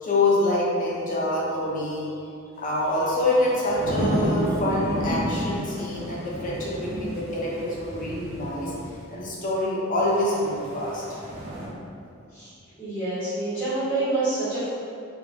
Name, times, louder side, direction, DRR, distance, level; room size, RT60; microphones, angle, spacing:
voice 1, 0.0-2.1 2.6-8.7 9.1-11.0, left 1 dB, 40° left, -6 dB, 0.6 m, -26 dB
sound 1, 2.8-9.0 10.1-11.7, equal, 35° right, 0.8 m, -31 dB
voice 2, 12.8-14.7, right 2 dB, 10° left, -14 dB, 0.8 m, -27 dB
3.2 x 2.1 x 2.6 m, 2.5 s
head